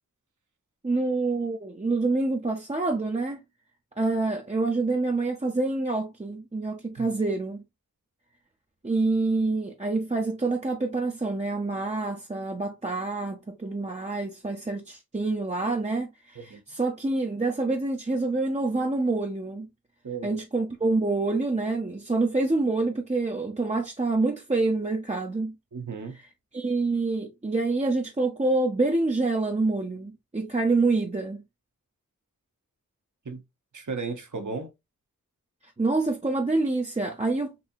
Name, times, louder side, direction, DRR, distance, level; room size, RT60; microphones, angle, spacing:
voice 1, 0.8-3.4 4.0-7.6 8.8-19.7 20.2-25.6 26.5-31.4 35.8-37.5, right 3 dB, 20° right, 0.6 m, -27 dB
voice 2, 20.0-20.4 25.7-26.2 33.2-33.4 33.7-34.7, right 4 dB, 55° right, 1.0 m, -35 dB
4.1 x 2.7 x 2.7 m
wide cardioid pair, 55°, 35 cm